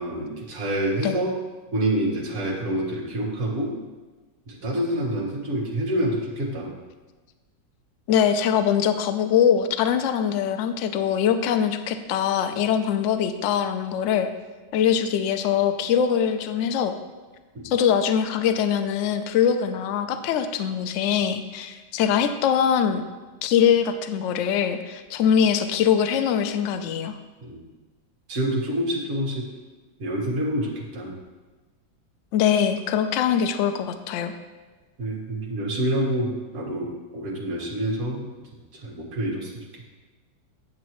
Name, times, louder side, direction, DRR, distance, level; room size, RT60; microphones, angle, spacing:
voice 1, 0.0-1.3 1.7-3.7 4.5-6.7 17.5-17.7 27.4-27.7 28.3-29.5 30.0-31.1 35.0-38.2 38.8-39.5, right 1 dB, 45° right, -3 dB, 1.7 m, -27 dB
voice 2, 8.1-14.3 14.7-17.0 17.6-23.0 23.4-27.2 32.3-34.3, left 8 dB, 85° left, 8 dB, 0.6 m, -22 dB
9.1 x 7.1 x 3.0 m, 1.3 s
omnidirectional pair, 1.9 m